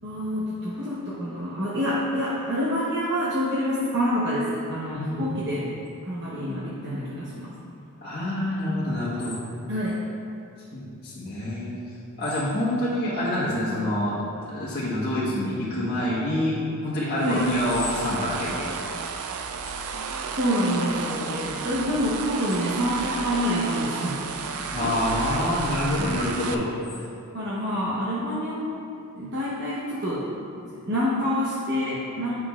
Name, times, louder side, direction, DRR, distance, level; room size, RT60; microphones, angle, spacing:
voice 1, 0.0-5.7 6.0-7.5 9.7-10.0 17.2-17.4 20.3-24.9 26.0-26.3 27.3-28.7 29.2-30.2 30.5-32.4, equal, 55° right, -8 dB, 0.9 m, -27 dB
voice 2, 4.9-5.5 8.0-9.3 10.7-11.7 12.2-14.1 14.5-16.6 16.8-18.8 24.7-26.6, left 1 dB, 50° left, -11 dB, 1.4 m, -26 dB
sound 1, 17.2-26.5, right 5 dB, 75° right, 0.4 m, -32 dB
9.3 x 5.9 x 2.4 m, 2.6 s
head